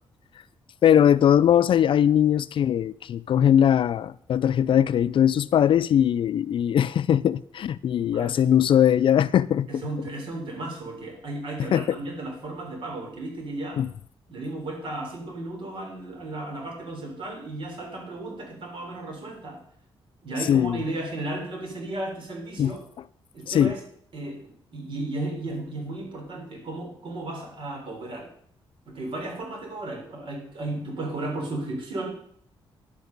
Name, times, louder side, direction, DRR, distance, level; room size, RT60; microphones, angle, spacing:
voice 1, 0.8-9.8 11.7-12.0 13.8-13.9 20.5-20.8 22.6-22.7 23.5-23.7, left 9 dB, 60° left, 0.4 m, -20 dB
voice 2, 8.1-8.4 9.7-13.8 14.3-19.6 20.2-22.8 23.3-23.8 24.1-28.3 28.9-32.1, right 2 dB, 60° right, 3.6 m, -34 dB
10.5 x 8.2 x 5.3 m
cardioid pair, 110°, 10 cm